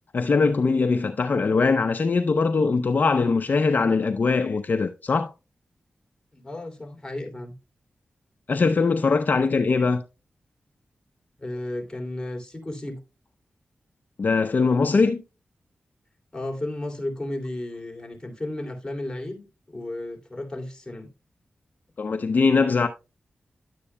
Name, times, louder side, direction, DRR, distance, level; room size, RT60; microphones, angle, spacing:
voice 1, 0.1-5.3 8.5-10.0 14.2-15.2 22.0-22.9, left 4 dB, 55° left, 0.6 m, -21 dB
voice 2, 6.3-7.5 11.4-13.0 16.3-21.1, left 1 dB, 20° left, 2.8 m, -33 dB
11.0 x 8.2 x 2.2 m
cardioid pair, 50°, 4 cm